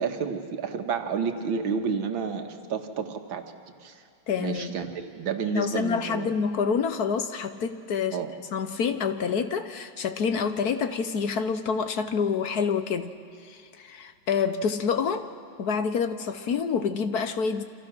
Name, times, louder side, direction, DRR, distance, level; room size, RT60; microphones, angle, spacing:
voice 1, 0.0-3.4 3.8-4.0 4.4-6.3 8.1-8.3, right 6 dB, 85° right, 6 dB, 2.2 m, -30 dB
voice 2, 4.3-4.7 5.5-8.2 8.5-13.1 13.5-15.3 15.6-17.6, left 6 dB, 60° left, 10 dB, 1.2 m, -27 dB
28.5 x 25.5 x 6.1 m, 2.4 s
omnidirectional pair, 2.1 m